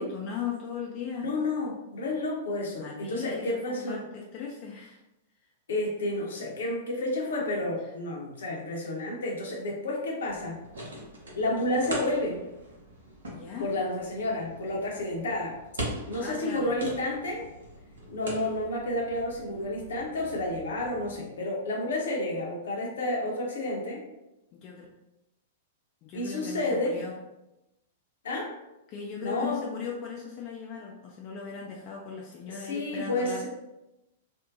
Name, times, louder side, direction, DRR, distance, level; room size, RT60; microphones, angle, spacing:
voice 1, 0.0-1.3 2.8-5.0 13.3-13.7 16.2-16.7 24.5-24.9 26.0-27.1 28.9-33.5, left 6 dB, 35° left, -2 dB, 0.3 m, -38 dB
voice 2, 1.2-4.0 5.7-10.6 11.4-12.4 13.6-15.5 16.1-17.4 18.1-24.0 26.1-27.0 28.2-28.5 29.2-29.6 32.5-33.5, left 1 dB, 65° left, -2 dB, 0.7 m, -30 dB
sound 1, 10.2-21.2, right 1 dB, 70° right, 0.7 m, -42 dB
2.6 x 2.1 x 2.5 m, 0.95 s
figure-of-eight pair, 100°, 0 cm